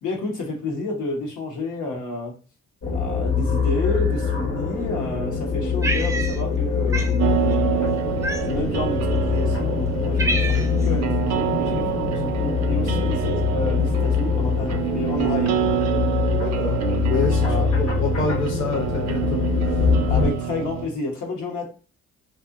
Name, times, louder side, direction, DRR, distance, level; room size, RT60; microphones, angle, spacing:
voice 1, 0.0-2.4 2.9-8.0 8.4-15.6 17.4-17.7 20.1-21.6, left 2 dB, 80° left, 0 dB, 1.1 m, -30 dB
sound 1, 2.8-20.3, left 5 dB, 60° left, 1.0 m, -24 dB
Cat, 5.8-6.6 6.9-7.2 8.2-8.7 9.4-9.5 9.9-10.9, right 2 dB, 10° right, 0.3 m, -27 dB
sound 2, 7.2-20.9, right 9 dB, 60° right, 0.5 m, -27 dB
voice 2, 16.4-16.8 17.1-17.5 17.7-19.9, left 4 dB, 40° left, 0 dB, 0.7 m, -27 dB
2.6 x 2.6 x 2.5 m, 0.35 s
cardioid pair, 90°, 30 cm